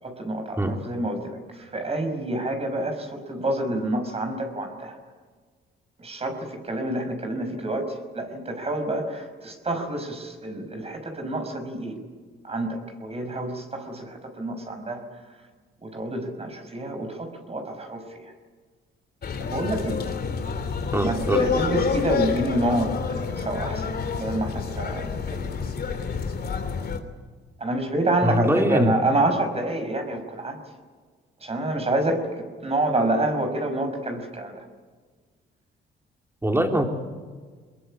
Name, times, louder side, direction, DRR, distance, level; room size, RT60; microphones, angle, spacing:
voice 1, 0.0-5.0 6.0-12.0 12.4-15.2 15.8-18.3 19.4-20.0 21.0-25.7 27.6-30.6 31.4-34.7, right 1 dB, 30° right, 5 dB, 5.4 m, -28 dB
sound 1, 19.2-27.0, left 5 dB, 55° left, 3.2 m, -28 dB
voice 2, 20.9-21.4 28.2-28.9 36.4-36.9, equal, 10° right, 3 dB, 4.0 m, -22 dB
23.5 x 21.5 x 8.7 m, 1.5 s
cardioid pair, 90°, 20 cm